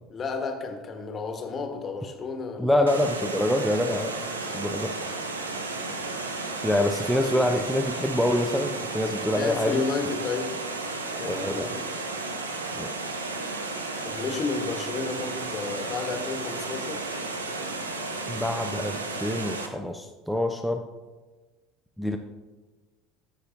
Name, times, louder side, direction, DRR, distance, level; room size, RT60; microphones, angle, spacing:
voice 1, 0.1-2.8 7.2-7.4 9.3-10.5 11.2-11.9 14.0-17.0, left 4 dB, 35° left, 5 dB, 1.2 m, -32 dB
voice 2, 2.6-4.9 6.6-9.8 11.2-11.7 12.8-12.9 18.3-20.9 22.0-22.2, left 1 dB, ahead, 5 dB, 0.5 m, -26 dB
Water, 2.9-19.7, right 3 dB, 80° right, 0.7 m, -33 dB
13.0 x 6.5 x 2.6 m, 1.3 s
figure-of-eight pair, 65°, 0 cm